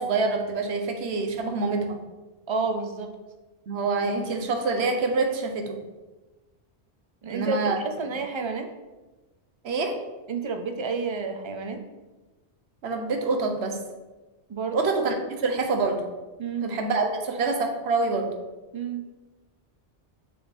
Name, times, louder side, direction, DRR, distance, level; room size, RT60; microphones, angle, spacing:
voice 1, 0.0-2.0 3.7-5.8 7.3-7.8 9.6-10.0 12.8-13.8 14.7-16.1 16.6-18.3, right 3 dB, 70° right, 4 dB, 1.0 m, -26 dB
voice 2, 2.5-3.1 7.2-8.7 10.3-11.8 14.5-14.9 16.4-16.8 18.7-19.1, right 4 dB, 40° right, 5 dB, 0.4 m, -30 dB
6.4 x 3.5 x 4.3 m, 1.2 s
omnidirectional pair, 1.2 m